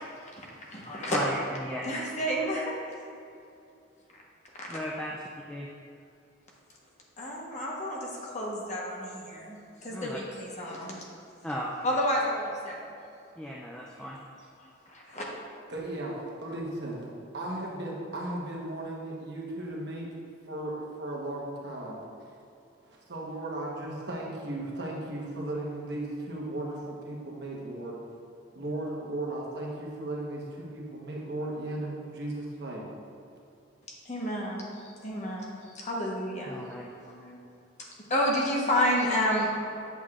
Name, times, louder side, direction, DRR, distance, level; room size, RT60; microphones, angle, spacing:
voice 1, 0.3-1.2 1.4-1.6 1.8-3.0 4.7-4.8 7.2-11.0 11.8-12.8 14.0-14.1 14.5-15.2 34.0-36.6 37.0-37.4 38.1-39.5, equal, 35° left, -3 dB, 1.1 m, -31 dB
voice 2, 1.1-1.8 4.7-5.1 5.5-5.7 9.9-10.2 11.4-11.8 13.4-14.2 36.5-36.9, equal, 5° left, -4 dB, 0.3 m, -35 dB
voice 3, 15.7-17.1 17.3-20.1 20.5-22.0 22.8-28.0 28.5-32.9, right 1 dB, 60° right, -3 dB, 1.1 m, -36 dB
8.2 x 6.3 x 2.4 m, 2.6 s
head